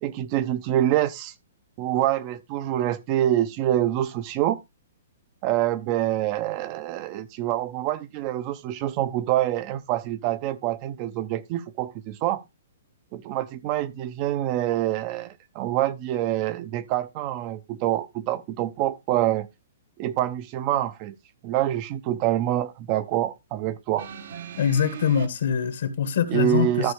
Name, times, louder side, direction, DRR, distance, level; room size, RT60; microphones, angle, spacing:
voice 1, 0.0-1.3 1.8-4.6 5.4-12.4 13.1-19.5 20.0-21.1 21.4-24.1 26.3-26.9, right 13 dB, 35° right, 0.6 m, -26 dB
sound 1, 24.0-25.3 26.3-26.4, right 8 dB, 65° right, 1.1 m, -39 dB
voice 2, 24.6-26.9, left 8 dB, 70° left, 1.7 m, -24 dB
13.0 x 5.2 x 3.3 m
hypercardioid pair, 150°, 0 cm